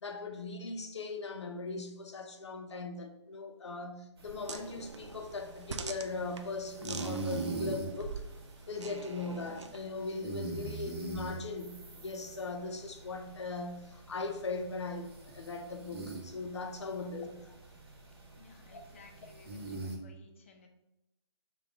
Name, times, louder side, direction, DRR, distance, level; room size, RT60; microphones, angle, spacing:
voice 1, 0.0-8.2 8.7-17.4 18.7-18.8, left 3 dB, 75° left, 0.7 m, -39 dB
sound 1, 4.2-20.0, right 3 dB, 60° right, 1.2 m, -43 dB
sound 2, 4.5-9.9, right 4 dB, 80° right, 0.5 m, -46 dB
voice 2, 18.4-20.7, left 4 dB, 30° left, 0.5 m, -58 dB
3.9 x 2.3 x 4.6 m
hypercardioid pair, 165°, 15 cm